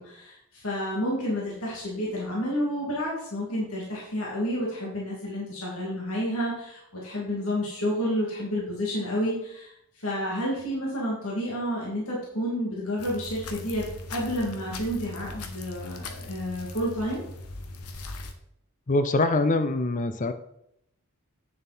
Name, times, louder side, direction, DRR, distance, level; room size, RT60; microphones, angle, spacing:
voice 1, 0.0-13.8 14.1-17.2, equal, 75° left, -4 dB, 2.6 m, -30 dB
sound 1, 13.0-18.3, left 2 dB, 90° left, 1.1 m, -39 dB
voice 2, 18.9-20.3, left 2 dB, 35° left, 10 dB, 0.5 m, -24 dB
8.9 x 6.9 x 4.4 m, 0.76 s
head